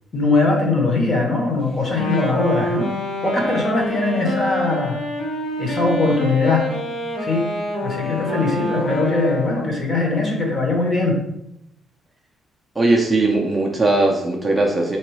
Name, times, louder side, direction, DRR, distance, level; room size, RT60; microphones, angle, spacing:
voice 1, 0.1-2.9 3.2-5.0 5.6-6.7 7.2-7.5 7.8-11.2, left 3 dB, 25° left, 1 dB, 0.9 m, -20 dB
Wind instrument woodwind instrument, 1.8-9.8, equal, 50° left, 1.8 m, -26 dB
voice 2, 12.8-15.0, right 2 dB, 15° right, -1 dB, 0.5 m, -19 dB
3.7 x 3.0 x 4.7 m, 0.82 s
cardioid pair, 170°, 0 cm